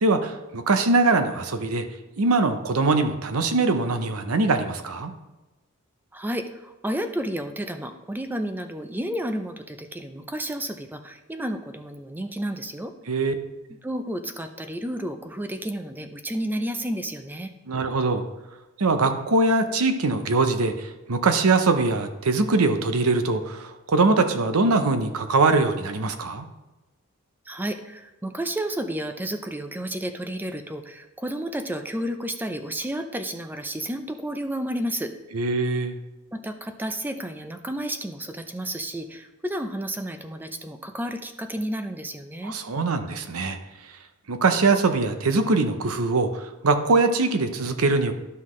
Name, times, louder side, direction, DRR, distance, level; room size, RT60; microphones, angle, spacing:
voice 1, 0.0-1.9 2.2-5.1 13.1-13.3 17.7-18.2 18.8-26.5 35.3-36.0 42.4-43.6 44.3-48.1, right 3 dB, 80° right, 8 dB, 0.8 m, -22 dB
voice 2, 6.1-12.9 13.8-17.5 27.5-35.1 36.3-42.6, right 1 dB, 10° right, 7 dB, 0.5 m, -31 dB
12.0 x 5.7 x 3.2 m, 1.0 s
head